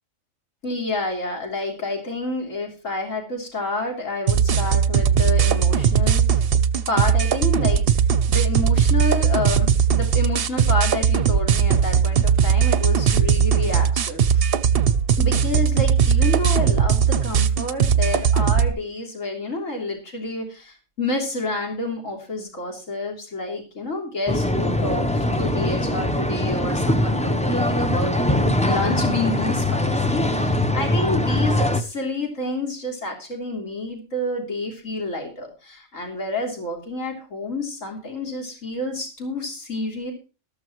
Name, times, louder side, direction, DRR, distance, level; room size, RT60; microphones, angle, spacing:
voice 1, 0.6-6.4 6.9-7.8 8.3-14.5 15.2-40.1, left 2 dB, 70° left, 1 dB, 3.5 m, -29 dB
sound 1, 4.3-18.7, right 7 dB, 55° right, 0.8 m, -19 dB
sound 2, 24.3-31.8, left 1 dB, 10° left, 0.4 m, -22 dB
14.0 x 13.0 x 3.0 m, 0.33 s
omnidirectional pair, 1.4 m